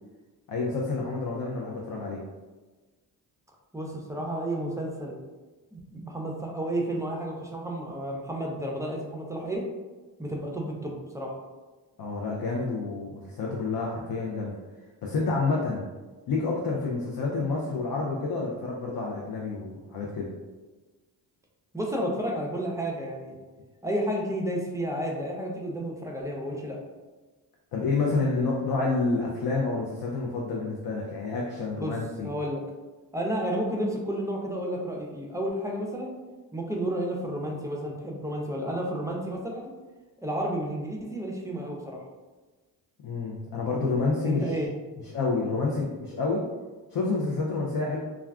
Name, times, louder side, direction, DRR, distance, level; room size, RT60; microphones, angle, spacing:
voice 1, 0.5-2.2 12.0-14.6 15.0-15.9 16.3-20.3 27.7-32.3 43.0-44.4 45.1-46.4 46.9-48.0, left 3 dB, 55° left, -2 dB, 0.6 m, -28 dB
voice 2, 3.7-5.2 5.7-9.7 10.2-11.3 21.7-23.4 23.8-26.8 31.7-31.9 32.2-32.6 33.1-36.1 36.5-39.7 40.2-42.0 44.2-44.7, right 1 dB, 10° right, -1 dB, 0.5 m, -31 dB
2.4 x 2.2 x 3.5 m, 1.3 s
cardioid pair, 65°, 41 cm